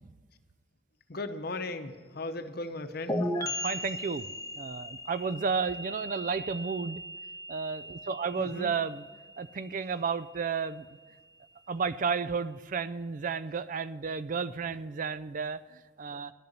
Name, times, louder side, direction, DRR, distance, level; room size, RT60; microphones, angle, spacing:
voice 1, 1.1-3.2 8.4-8.7, left 2 dB, 55° left, 9 dB, 0.9 m, -37 dB
sound 1, 3.1-10.6, equal, 15° left, 1.1 m, -38 dB
voice 2, 3.4-4.3 4.6-7.0 7.5-9.1 9.4-10.9 11.7-16.3, right 5 dB, 45° right, 15 dB, 0.4 m, -32 dB
11.5 x 6.8 x 9.2 m, 1.5 s
head